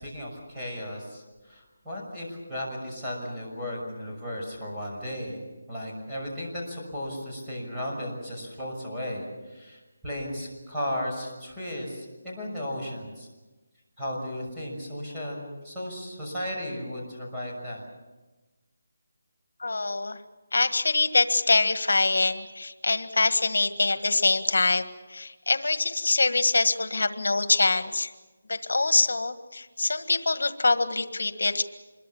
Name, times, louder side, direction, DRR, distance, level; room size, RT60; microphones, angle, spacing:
voice 1, 0.0-13.3 14.0-17.9, left 1 dB, 5° right, -7 dB, 6.2 m, -35 dB
voice 2, 19.6-20.2 20.5-28.1 28.5-31.6, left 3 dB, 75° left, 10 dB, 1.6 m, -24 dB
26.0 x 22.5 x 7.1 m, 1.2 s
figure-of-eight pair, 170°, 0 cm